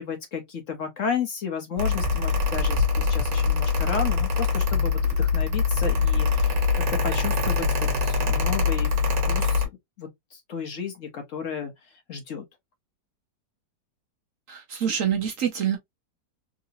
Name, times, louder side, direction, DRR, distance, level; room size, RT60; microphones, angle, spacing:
voice 1, 0.0-6.5 7.0-8.9 9.2-9.7 10.0-12.4, left 6 dB, 55° left, 1.0 m, -33 dB
Mechanical fan, 1.8-9.7, left 4 dB, 85° right, 1.7 m, -23 dB
voice 2, 14.5-15.8, right 8 dB, 60° right, 1.0 m, -26 dB
3.8 x 2.7 x 2.5 m
omnidirectional pair, 1.8 m